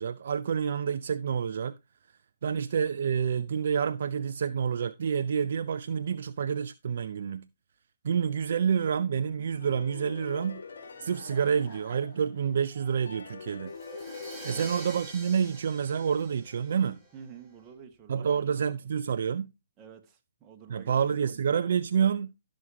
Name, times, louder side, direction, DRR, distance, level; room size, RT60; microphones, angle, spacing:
voice 1, 0.0-1.7 2.4-7.5 8.0-10.6 11.0-13.7 14.4-17.0 18.1-19.5 20.7-22.3, right 7 dB, 55° right, 0.5 m, -28 dB
sound 1, 9.5-12.4 13.1-15.9, left 5 dB, 65° left, 2.4 m, -45 dB
Laughter / Crowd, 10.5-14.3, left 1 dB, 35° left, 5.5 m, -52 dB
Crash cymbal, 13.7-17.4, right 2 dB, ahead, 5.3 m, -45 dB
voice 2, 17.1-18.6 19.8-21.2, right 7 dB, 20° right, 1.7 m, -50 dB
16.0 x 6.4 x 2.8 m
figure-of-eight pair, 130°, 0 cm